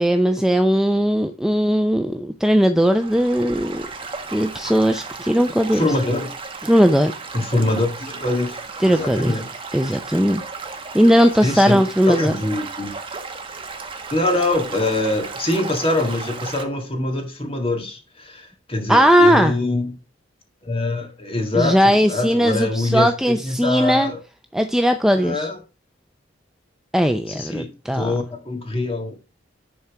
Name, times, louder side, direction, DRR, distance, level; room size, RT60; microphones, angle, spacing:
voice 1, 0.0-3.8 4.3-5.8 6.6-7.1 8.8-9.4 9.7-10.4 10.9-12.3 18.9-19.6 21.5-24.1 24.5-25.5 26.9-28.1, equal, 5° right, 0.4 m, -18 dB
Stream / Gurgling / Trickle dribble, 2.8-16.6, right 4 dB, 25° right, 1.1 m, -35 dB
voice 2, 5.7-6.3 7.3-9.5 11.4-12.9 14.1-20.0 20.6-24.2 25.2-25.6 27.3-29.1, left 2 dB, 30° left, 2.0 m, -24 dB
10.5 x 4.3 x 4.8 m
head